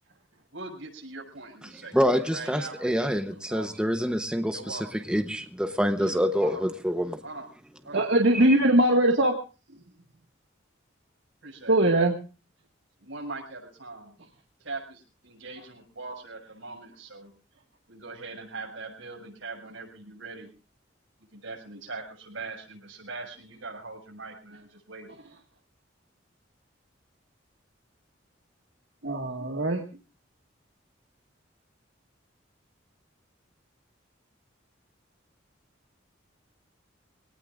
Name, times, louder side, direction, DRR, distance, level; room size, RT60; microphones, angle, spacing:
voice 1, 0.5-3.8 4.5-5.0 5.9-6.7 7.2-7.5 7.8-8.1 8.4-8.7 11.4-11.8 13.0-14.1 14.6-17.3 17.9-20.5 21.3-25.1, right 3 dB, 90° right, 2 dB, 6.3 m, -41 dB
voice 2, 1.9-4.8 5.1-7.2 8.3-8.4, equal, 5° right, 7 dB, 0.9 m, -26 dB
voice 3, 7.9-9.3 11.7-12.1 29.0-29.8, right 1 dB, 70° right, 2 dB, 1.8 m, -21 dB
25.0 x 18.0 x 2.5 m, 0.33 s
head